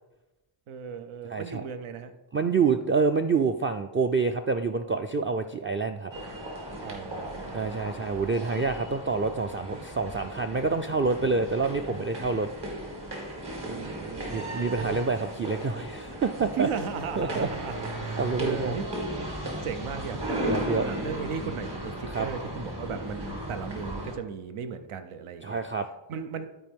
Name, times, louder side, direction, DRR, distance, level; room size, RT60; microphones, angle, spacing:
voice 1, 0.7-2.1 6.8-8.1 13.7-15.0 16.6-18.9 19.6-25.6 26.1-26.5, right 7 dB, 85° right, 9 dB, 0.7 m, -36 dB
voice 2, 1.2-1.6 2.3-6.1 7.5-12.5 14.3-16.7 17.2-17.5 18.1-18.8 20.4-20.9 22.1-22.3 25.4-25.9, right 4 dB, 25° right, 5 dB, 0.4 m, -27 dB
sound 1, 6.1-24.1, right 1 dB, 55° right, 2.1 m, -36 dB
12.5 x 4.4 x 3.5 m, 1.1 s
cardioid pair, 65°, 48 cm